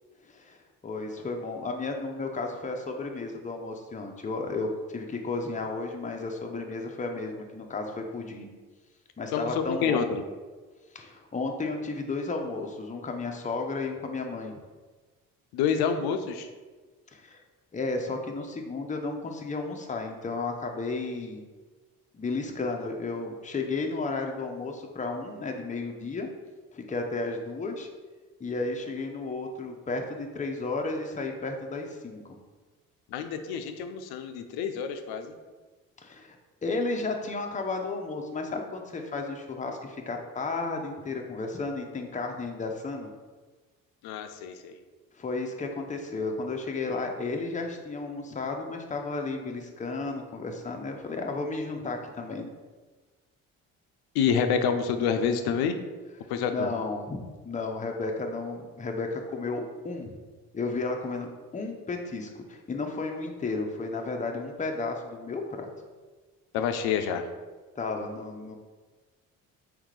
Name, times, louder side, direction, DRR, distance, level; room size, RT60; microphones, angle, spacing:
voice 1, 0.3-8.5 9.2-10.0 10.9-14.6 17.1-17.4 17.7-21.4 22.1-26.3 26.7-27.9 28.4-32.3 36.0-36.4 36.6-43.1 45.2-52.5 56.4-60.2 60.5-65.7 67.8-68.5, left 3 dB, 20° left, 3 dB, 0.6 m, -33 dB
voice 2, 9.3-10.2 15.5-16.5 33.1-35.3 44.0-44.7 54.1-55.8 56.3-56.7 66.5-67.3, left 7 dB, 70° left, 7 dB, 0.6 m, -28 dB
3.5 x 3.2 x 3.2 m, 1.3 s
hypercardioid pair, 50°, 40 cm